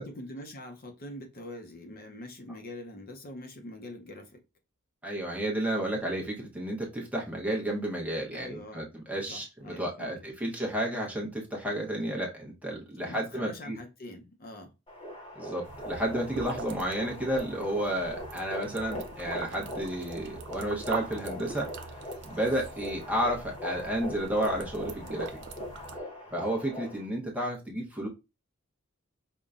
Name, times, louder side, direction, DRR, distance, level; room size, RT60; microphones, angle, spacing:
voice 1, 0.0-4.4 8.3-8.9 9.3-10.1 13.0-14.7, left 1 dB, 45° left, 0.6 m, -44 dB
voice 2, 5.0-13.8 15.3-21.7 22.2-25.4 26.3-28.1, right 1 dB, 5° right, 0.8 m, -32 dB
sound 1, 14.9-27.0, equal, 25° left, 0.9 m, -41 dB
sound 2, 15.6-26.0, right 5 dB, 55° right, 0.5 m, -43 dB
5.3 x 2.2 x 2.4 m
head